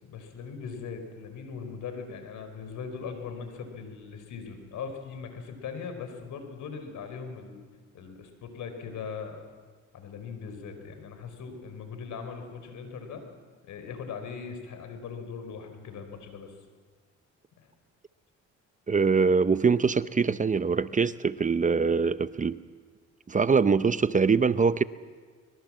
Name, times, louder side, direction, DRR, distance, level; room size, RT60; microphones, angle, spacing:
voice 1, 0.0-7.6 7.9-9.4 9.9-13.2 13.6-16.6 17.6-17.7, left 5 dB, 75° left, 7 dB, 4.4 m, -40 dB
voice 2, 18.9-22.6 23.3-24.8, right 5 dB, 25° right, 15 dB, 0.6 m, -23 dB
23.5 x 21.5 x 7.5 m, 1.5 s
cardioid pair, 90°, 30 cm